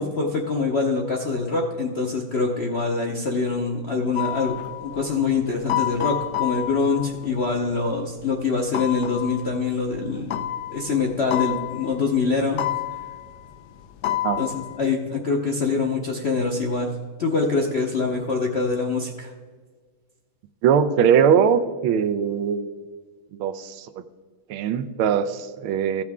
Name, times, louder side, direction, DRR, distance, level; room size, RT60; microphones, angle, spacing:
voice 1, 0.0-4.5 4.8-10.4 10.7-12.6 14.4-16.9 17.2-19.3, left 4 dB, 55° left, -1 dB, 0.7 m, -24 dB
sound 1, 4.1-8.4 8.7-14.8, left 13 dB, 85° left, 0.8 m, -30 dB
voice 2, 20.6-22.7 23.4-23.9 24.5-26.0, right 7 dB, 85° right, 10 dB, 1.5 m, -21 dB
15.5 x 6.1 x 3.5 m, 1.5 s
omnidirectional pair, 2.3 m